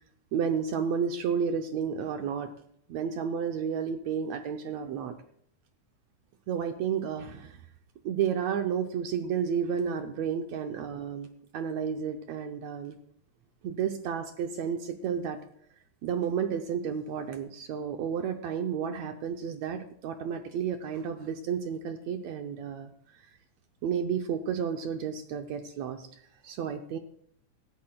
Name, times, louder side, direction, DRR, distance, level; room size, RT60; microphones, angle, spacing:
voice 1, 0.3-2.5 2.9-5.2 6.5-7.6 8.0-13.0 13.6-15.5 16.0-23.3 23.8-27.0, right 7 dB, 75° right, 5 dB, 1.8 m, -32 dB
18.0 x 13.5 x 2.3 m, 0.66 s
omnidirectional pair, 3.5 m